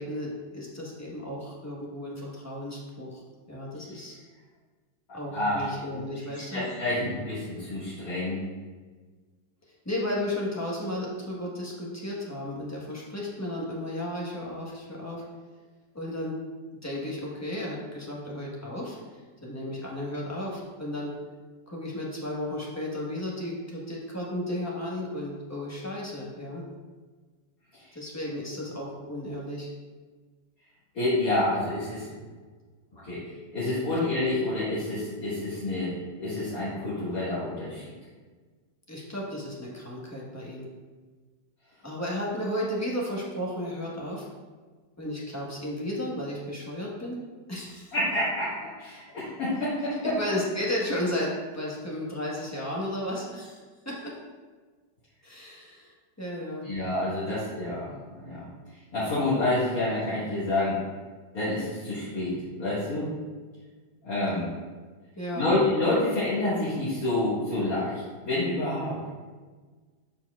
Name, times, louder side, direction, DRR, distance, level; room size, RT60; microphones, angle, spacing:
voice 1, 0.0-3.2 3.5-4.2 5.1-6.6 9.8-15.2 15.9-16.4 16.7-21.1 21.7-26.6 27.9-29.7 33.9-34.0 38.9-40.7 41.8-44.3 45.0-47.2 47.5-47.9 50.2-53.6 53.8-54.1 55.2-56.7 65.2-65.5, left 1 dB, 10° left, -4 dB, 1.0 m, -34 dB
voice 2, 5.3-6.0 6.3-8.4 30.9-32.1 33.0-33.2 33.5-35.9 36.2-37.8 47.9-50.2 56.6-57.9 58.2-58.4 58.9-60.8 61.3-63.1 64.0-64.5 65.3-69.0, left 2 dB, 50° left, -12 dB, 2.3 m, -28 dB
11.5 x 4.5 x 2.4 m, 1.4 s
omnidirectional pair, 2.0 m